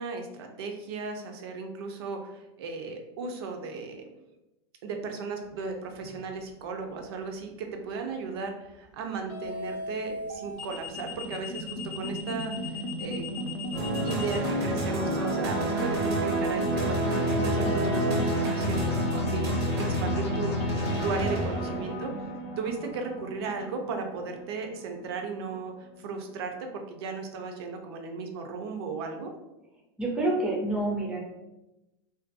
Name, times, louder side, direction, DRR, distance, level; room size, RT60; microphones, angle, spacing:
voice 1, 0.0-4.0 4.8-13.3 14.0-22.1 22.6-29.3, right 4 dB, 70° right, 4 dB, 0.5 m, -36 dB
sound 1, 6.0-6.3 9.3-14.4, left 4 dB, 35° left, 0.7 m, -38 dB
sound 2, 9.4-25.8, equal, 85° left, 0.5 m, -36 dB
sound 3, 13.7-22.0, right 1 dB, 90° right, 0.9 m, -28 dB
voice 2, 30.0-31.2, right 2 dB, 5° right, -2 dB, 0.4 m, -28 dB
2.5 x 2.2 x 2.4 m, 0.96 s
supercardioid pair, 160°, 14 cm